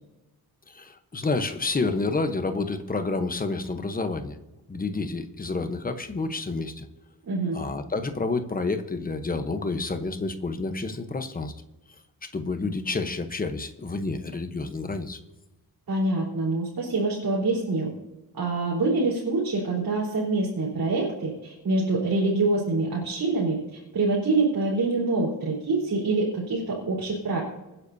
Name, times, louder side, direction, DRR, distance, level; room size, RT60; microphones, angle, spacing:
voice 1, 0.7-4.4 4.7-6.8 7.5-11.5 12.3-15.2, left 3 dB, 20° left, 7 dB, 1.0 m, -29 dB
voice 2, 7.3-7.6 15.9-17.9 18.3-27.4, right 3 dB, 60° right, -4 dB, 4.1 m, -25 dB
25.5 x 10.0 x 2.8 m, 1.0 s
wide cardioid pair, 165°, 39 cm